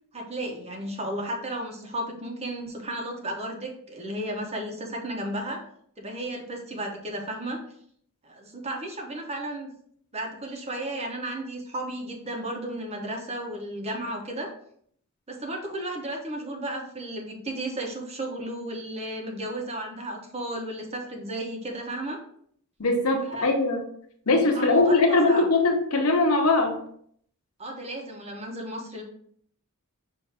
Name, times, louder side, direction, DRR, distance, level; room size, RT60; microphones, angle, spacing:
voice 1, 0.1-5.6 6.0-7.6 8.2-9.7 10.1-14.5 15.3-22.2 23.3-23.5 24.5-25.5 27.6-29.0, right 1 dB, 30° right, 2 dB, 0.9 m, -34 dB
voice 2, 22.8-23.8 24.3-26.8, left 2 dB, 75° left, 2 dB, 1.0 m, -21 dB
5.6 x 2.7 x 3.4 m, 0.64 s
head